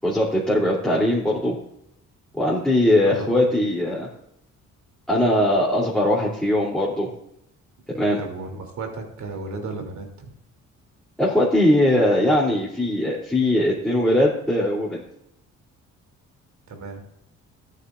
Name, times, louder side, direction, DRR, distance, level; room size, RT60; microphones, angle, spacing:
voice 1, 0.0-1.5 2.3-4.1 5.1-7.1 7.9-8.2 11.2-15.0, left 1 dB, ahead, -7 dB, 3.0 m, -20 dB
voice 2, 3.0-3.4 8.2-10.3 16.7-17.0, right 3 dB, 70° right, 4 dB, 2.9 m, -34 dB
14.0 x 9.4 x 2.5 m, 0.79 s
cardioid pair, 90°, 30 cm